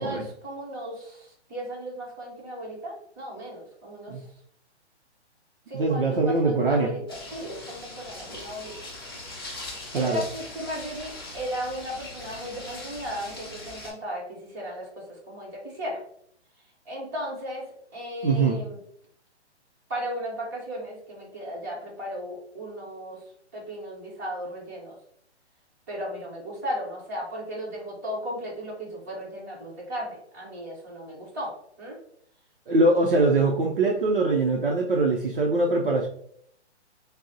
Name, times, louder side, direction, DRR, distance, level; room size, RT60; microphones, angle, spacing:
voice 1, 0.0-4.2 5.7-8.9 9.2-9.6 9.9-16.0 16.8-18.8 19.9-23.2 23.5-24.9 25.9-31.5 31.8-32.0, equal, 15° right, -7 dB, 0.9 m, -36 dB
voice 2, 5.7-7.0 9.9-10.2 18.2-18.6 32.7-36.1, right 3 dB, 50° right, 0 dB, 0.5 m, -22 dB
sound 1, 7.1-13.9, left 2 dB, 20° left, 0.5 m, -40 dB
6.0 x 2.0 x 2.7 m, 0.67 s
hypercardioid pair, 175°, 34 cm